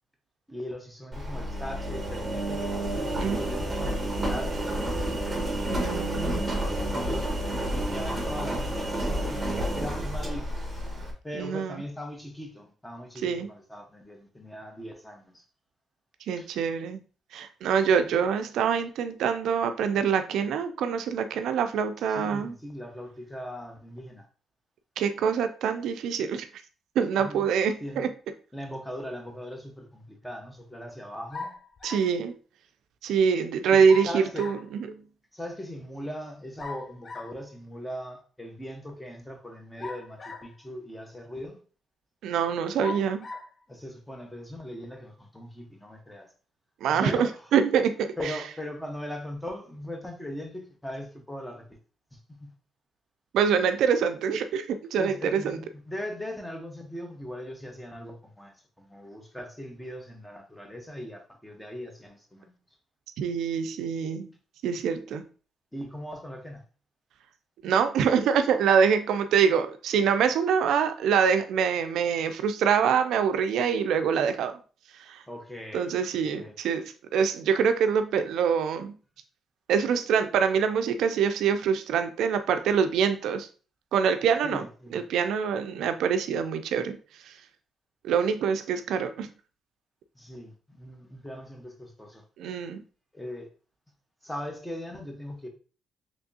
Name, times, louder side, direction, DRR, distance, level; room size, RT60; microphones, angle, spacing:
voice 1, 0.5-5.3 6.8-10.6 11.2-15.4 16.4-16.5 22.1-24.3 27.2-27.5 27.8-28.1 28.5-31.6 33.7-34.5 35.3-41.6 43.7-46.3 46.9-47.3 48.2-51.8 52.1-52.5 55.0-62.6 65.7-66.6 75.3-76.6 84.4-85.0 90.1-92.2 93.1-93.5 94.2-95.5, left 1 dB, 5° left, 0.8 m, -39 dB
Engine, 1.1-11.1, right 1 dB, 20° right, 1.0 m, -30 dB
voice 2, 5.7-6.5 11.3-11.8 13.2-13.5 16.3-17.0 17.3-22.5 25.0-26.5 27.0-28.1 31.8-32.4 33.0-34.6 34.9-35.0 42.2-43.3 46.8-48.1 53.3-55.6 63.2-64.3 64.6-65.3 67.6-74.6 74.9-75.2 75.7-78.9 79.7-83.5 83.9-84.6 84.9-87.4 88.0-89.3 92.4-92.8, right 7 dB, 80° right, 0.3 m, -25 dB
sound 1, 31.3-32.2 33.9-34.7 36.6-37.4 39.8-40.6 41.4-41.5 42.8-43.5, left 3 dB, 45° left, 0.4 m, -39 dB
3.4 x 3.0 x 2.7 m
cardioid pair, 90°, 0 cm